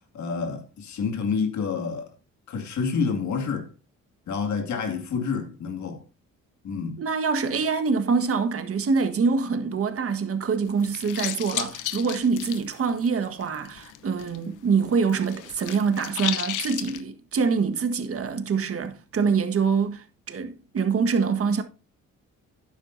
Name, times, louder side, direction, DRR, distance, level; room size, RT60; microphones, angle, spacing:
voice 1, 0.1-2.1 2.5-3.7 4.3-6.0 6.6-7.0, left 5 dB, 70° left, 2.2 m, -28 dB
voice 2, 7.0-21.6, right 5 dB, 50° right, 1.5 m, -25 dB
sound 1, 10.7-14.4 14.6-17.0, left 13 dB, 90° left, 0.9 m, -33 dB
12.0 x 9.6 x 2.7 m
cardioid pair, 90°, 30 cm